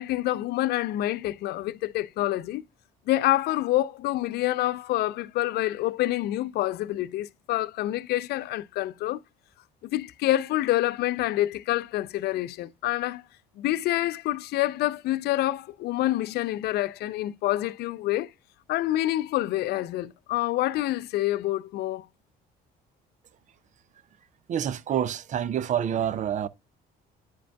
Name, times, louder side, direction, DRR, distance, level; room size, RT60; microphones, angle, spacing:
voice 1, 0.0-2.6 3.1-9.2 9.8-13.2 13.6-18.3 18.7-22.1, left 15 dB, 70° left, 0.5 m, -27 dB
voice 2, 24.5-26.5, right 9 dB, 45° right, 0.5 m, -27 dB
10.0 x 5.1 x 2.2 m
cardioid pair, 110°, 17 cm